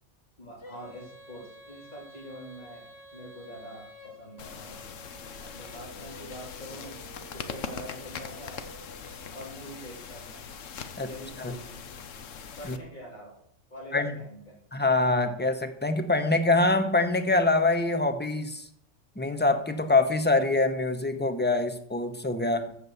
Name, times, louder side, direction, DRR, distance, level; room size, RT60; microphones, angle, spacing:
voice 1, 0.4-4.8 5.4-8.6 9.3-10.4 10.9-11.8 12.6-13.4 13.7-14.6, equal, 40° left, -3 dB, 3.5 m, -45 dB
Female singing, 0.6-9.4, equal, 55° left, 2.2 m, -51 dB
sound 1, 4.4-12.8, left 6 dB, 85° left, 1.3 m, -41 dB
voice 2, 14.7-18.7 19.2-22.8, left 2 dB, 10° left, 9 dB, 0.9 m, -25 dB
14.5 x 5.6 x 7.0 m, 0.69 s
omnidirectional pair, 1.3 m